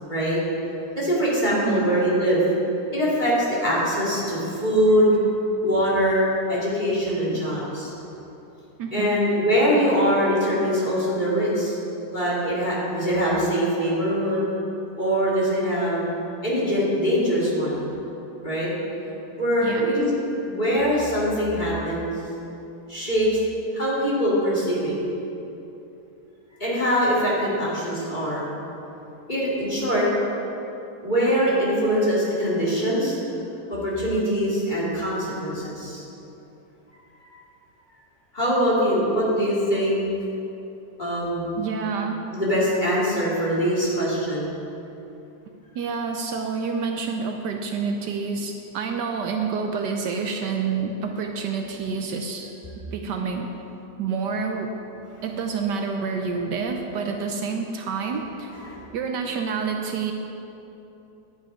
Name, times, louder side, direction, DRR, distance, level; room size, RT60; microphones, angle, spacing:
voice 1, 0.1-0.4 1.0-2.4 2.9-5.3 5.6-7.9 8.9-11.8 12.1-14.5 15.0-16.1 16.4-17.8 18.4-18.7 19.4-20.1 20.4-22.1 22.9-23.4 23.7-25.0 26.6-28.5 29.3-30.1 31.0-33.2 33.7-36.0 37.2-37.3 38.3-40.0 41.0-41.5 42.3-44.5 58.5-58.8, equal, 25° left, -7 dB, 2.9 m, -23 dB
voice 2, 1.5-1.9 7.3-7.4 8.8-9.2 19.6-19.9 41.6-42.2 45.7-52.5 52.9-53.5 54.0-54.7 55.2-58.5 58.9-60.1, right 5 dB, 70° right, 4 dB, 1.3 m, -28 dB
10.5 x 9.0 x 5.1 m, 2.9 s
omnidirectional pair, 2.0 m